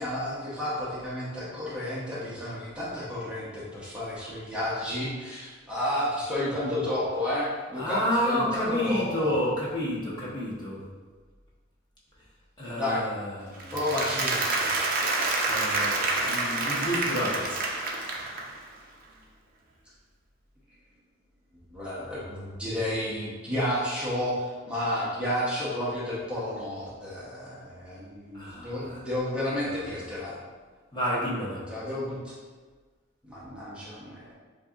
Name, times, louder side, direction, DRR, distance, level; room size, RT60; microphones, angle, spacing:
voice 1, 0.0-8.0 8.2-9.3 12.8-13.0 13.7-14.4 21.7-30.4 31.7-32.3 33.2-34.3, left 1 dB, 5° right, -9 dB, 0.9 m, -31 dB
voice 2, 7.8-10.8 12.6-13.8 15.4-17.6 28.3-29.1 29.6-30.0 30.9-31.6, equal, 25° left, -7 dB, 1.1 m, -30 dB
Applause, 13.6-18.6, right 2 dB, 50° right, 0.7 m, -28 dB
7.7 x 2.7 x 2.4 m, 1.4 s
head